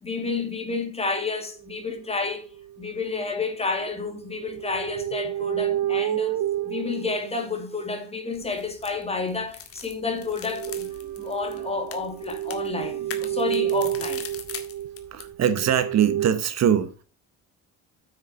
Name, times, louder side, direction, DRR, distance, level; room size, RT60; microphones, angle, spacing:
voice 1, 0.0-2.5 2.8-10.9 11.2-14.2, left 4 dB, 20° left, 2.5 m, -30 dB
sound 1, 1.7-1.8 2.5-2.8 3.7-8.1 10.3-16.3, right 12 dB, 80° right, 0.7 m, -30 dB
sound 2, 8.3-15.3, left 7 dB, 45° left, 1.9 m, -42 dB
voice 2, 15.1-17.0, right 9 dB, 55° right, 1.1 m, -22 dB
9.2 x 6.5 x 4.2 m
cardioid pair, 140°, 32 cm